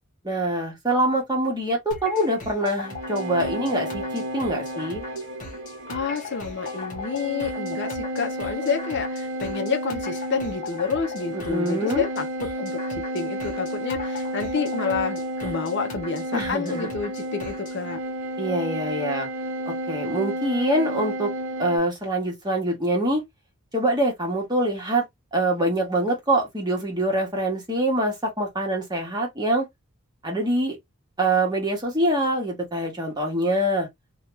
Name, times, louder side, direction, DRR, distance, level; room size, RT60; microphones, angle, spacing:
voice 1, 0.2-5.0 11.3-12.0 16.3-16.9 18.4-19.3 19.7-21.3 21.6-23.2 23.7-25.0 25.3-29.7 30.2-30.8 31.2-33.9, right 1 dB, 20° right, 1.1 m, -24 dB
sound 1, 1.9-17.8, left 3 dB, 35° left, 1.0 m, -40 dB
sound 2, 2.8-21.8, equal, 65° right, 0.8 m, -32 dB
voice 2, 5.9-18.0, left 5 dB, 50° left, 0.5 m, -29 dB
2.9 x 2.3 x 3.0 m
head